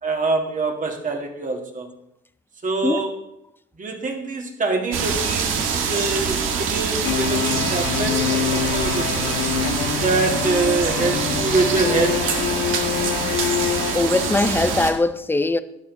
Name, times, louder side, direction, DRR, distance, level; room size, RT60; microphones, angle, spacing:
voice 1, 0.0-1.9 2.6-3.2 3.8-9.4 10.0-12.4, right 3 dB, 40° right, 2.1 m, -25 dB
sound 1, 4.9-14.9, right 6 dB, 90° right, 1.7 m, -25 dB
sound 2, 7.0-14.8, left 10 dB, 90° left, 0.6 m, -26 dB
voice 2, 13.9-15.6, left 2 dB, 10° left, 0.6 m, -20 dB
11.5 x 9.4 x 4.1 m
cardioid pair, 90°, 20 cm